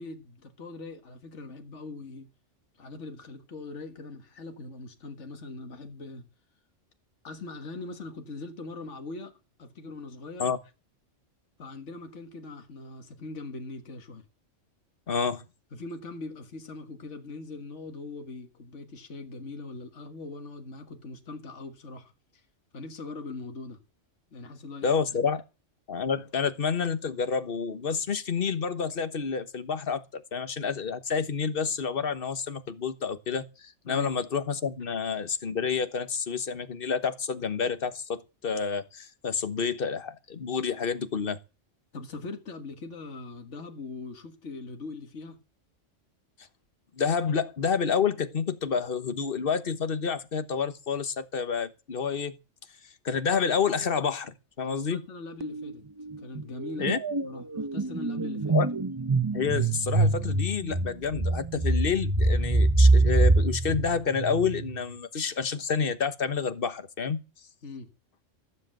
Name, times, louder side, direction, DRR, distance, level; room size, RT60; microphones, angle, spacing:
voice 1, 0.0-2.3 2.8-6.3 7.2-9.3 9.6-10.5 11.6-14.3 15.7-22.4 22.7-23.8 24.3-25.2 33.9-34.1 41.9-45.4 54.6-55.8 56.2-57.0 57.2-58.6 67.6-67.9, left 3 dB, 70° left, 2.0 m, -41 dB
voice 2, 15.1-15.4 24.8-25.4 25.9-41.4 47.0-52.4 53.0-55.0 56.8-57.0 58.5-58.7 59.3-67.2, left 6 dB, 50° left, 1.4 m, -29 dB
sound 1, 55.4-55.7 56.0-64.8, right 2 dB, 20° right, 0.9 m, -25 dB
14.5 x 7.8 x 7.7 m
omnidirectional pair, 1.3 m